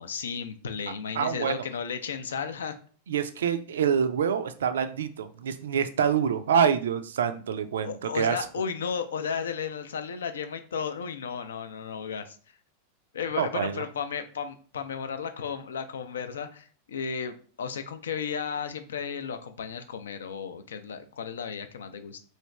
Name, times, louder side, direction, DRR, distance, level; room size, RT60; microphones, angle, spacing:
voice 1, 0.0-2.8 7.8-12.4 13.1-22.2, left 6 dB, 65° left, 9 dB, 0.4 m, -34 dB
voice 2, 1.1-1.6 3.1-8.4 13.3-13.8, right 7 dB, 65° right, 10 dB, 0.3 m, -26 dB
3.1 x 2.7 x 3.1 m, 0.41 s
figure-of-eight pair, 90°, 0 cm